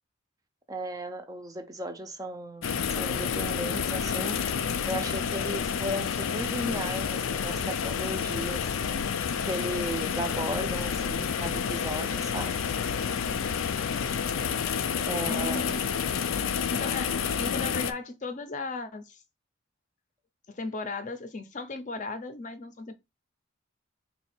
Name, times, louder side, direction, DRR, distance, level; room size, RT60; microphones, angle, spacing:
voice 1, 0.7-8.8 9.5-12.5 15.1-15.7, right 1 dB, 20° right, 0.4 m, -36 dB
sound 1, 2.6-17.9, left 7 dB, 85° left, 0.4 m, -29 dB
voice 2, 15.2-16.2 16.7-19.2 20.5-22.9, left 3 dB, 40° left, 0.5 m, -36 dB
3.9 x 2.3 x 4.2 m
head